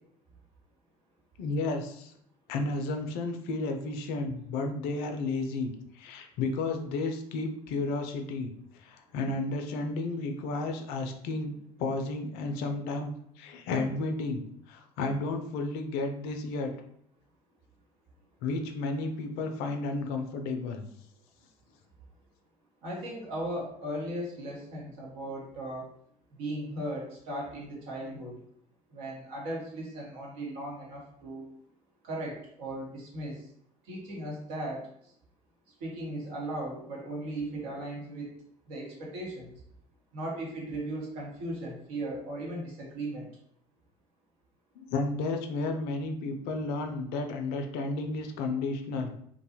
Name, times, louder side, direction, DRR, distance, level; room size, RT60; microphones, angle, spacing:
voice 1, 1.4-2.1 2.5-8.5 8.8-13.1 13.4-16.7 18.4-20.8 44.8-49.1, left 3 dB, 60° left, 5 dB, 0.4 m, -32 dB
voice 2, 22.8-25.9 26.4-28.3 28.9-31.5 32.0-33.4 33.9-34.9 35.8-38.3 38.7-39.5 40.1-43.2, right 1 dB, 65° right, -3 dB, 1.0 m, -37 dB
2.6 x 2.2 x 2.8 m, 0.68 s
hypercardioid pair, 60°, 18 cm